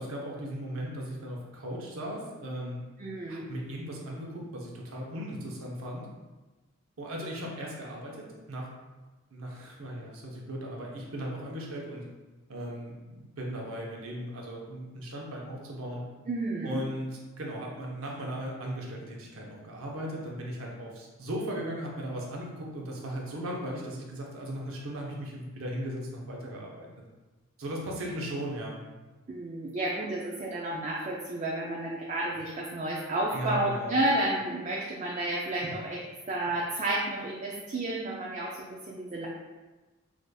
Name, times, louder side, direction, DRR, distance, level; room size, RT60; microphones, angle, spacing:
voice 1, 0.0-2.8 3.3-6.1 7.0-8.7 9.3-12.0 12.5-16.0 16.6-17.1 17.4-26.9 27.6-28.8 33.3-34.0, equal, 85° right, -2 dB, 0.8 m, -37 dB
voice 2, 3.0-3.5 16.3-16.8 29.3-39.3, right 1 dB, 35° right, -3 dB, 0.3 m, -31 dB
4.8 x 2.5 x 2.2 m, 1.2 s
head